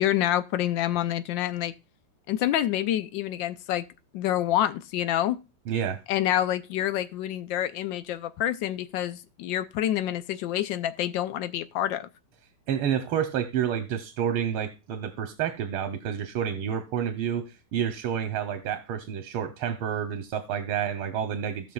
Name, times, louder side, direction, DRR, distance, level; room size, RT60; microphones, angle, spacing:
voice 1, 0.0-1.7 2.3-3.8 4.1-5.4 6.1-12.1, left 12 dB, 75° left, 1.2 m, -27 dB
voice 2, 5.7-6.0 12.7-21.7, right 8 dB, 80° right, 1.8 m, -29 dB
17.5 x 5.9 x 2.3 m
omnidirectional pair, 2.4 m